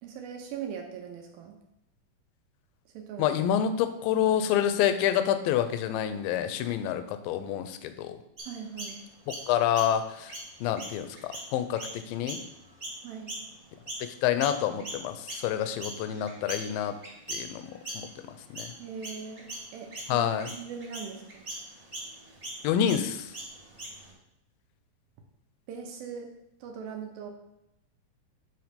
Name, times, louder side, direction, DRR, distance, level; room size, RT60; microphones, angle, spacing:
voice 1, 0.0-1.6 2.9-3.3 8.5-9.0 13.0-13.3 18.8-21.4 25.7-26.3 26.6-27.3, right 6 dB, 80° right, 2 dB, 2.5 m, -40 dB
voice 2, 3.2-8.2 9.3-10.3 10.6-12.4 14.0-17.0 17.3-18.7 20.1-20.5 22.6-23.3, left 10 dB, 80° left, 10 dB, 2.1 m, -28 dB
Chirp tweet, 8.4-14.1 14.4-24.1, right 1 dB, 25° right, 1.6 m, -41 dB
8.0 x 3.2 x 5.1 m, 0.84 s
omnidirectional pair, 4.3 m